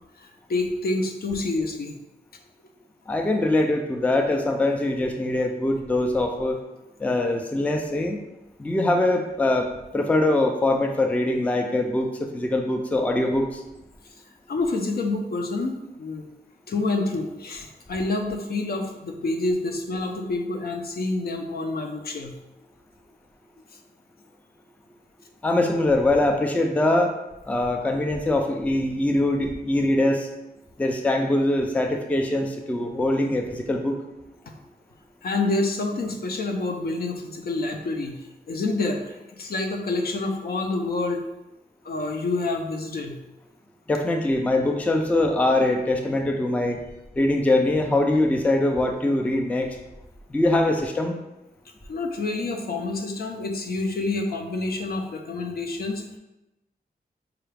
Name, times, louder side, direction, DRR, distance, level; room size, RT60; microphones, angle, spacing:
voice 1, 0.2-2.0 14.5-16.2 16.7-22.4 34.5-34.6 35.2-41.2 41.8-43.2 51.9-56.0, left 2 dB, 65° left, 3 dB, 0.6 m, -28 dB
voice 2, 3.1-6.6 7.0-8.2 8.6-9.7 9.9-13.6 25.4-27.1 27.5-30.3 30.8-34.0 43.9-46.8 47.2-49.8 50.3-51.1, left 2 dB, 10° left, 4 dB, 0.3 m, -23 dB
4.7 x 2.3 x 3.3 m, 0.97 s
wide cardioid pair, 140°, 17 cm